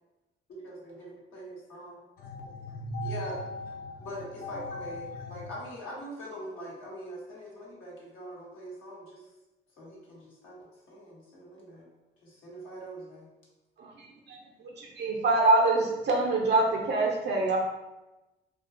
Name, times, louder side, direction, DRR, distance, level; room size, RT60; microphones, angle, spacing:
voice 1, 0.5-2.0 3.0-3.4 4.0-9.3 9.8-11.9 12.2-13.3, equal, 75° left, -5 dB, 1.0 m, -43 dB
voice 2, 2.2-4.1 4.4-5.3, equal, 45° left, 1 dB, 0.4 m, -38 dB
voice 3, 13.8-14.4 14.8-17.6, right 2 dB, 55° right, -1 dB, 0.5 m, -25 dB
2.4 x 2.1 x 2.4 m, 1.0 s
supercardioid pair, 55°, 21 cm